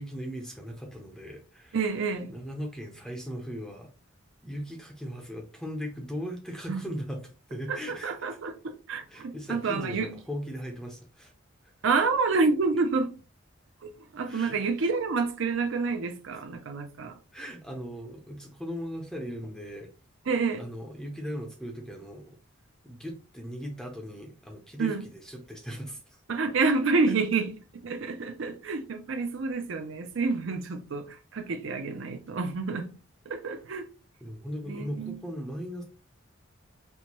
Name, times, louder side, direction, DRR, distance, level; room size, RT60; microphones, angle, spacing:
voice 1, 0.0-1.8 2.3-3.9 4.4-8.2 9.1-11.3 11.6-11.7 14.2-14.6 16.3-16.4 17.3-19.9 20.6-22.3 22.8-26.2 34.2-35.8, equal, 5° left, 0.5 m, -38 dB
voice 2, 1.7-2.3 6.7-6.8 7.7-10.1 11.8-13.1 13.8-17.2 20.3-20.6 24.8-25.0 26.3-27.5 27.8-32.9 33.3-33.8 34.7-35.2, right 4 dB, 70° right, 0.5 m, -28 dB
4.3 x 2.2 x 2.9 m
head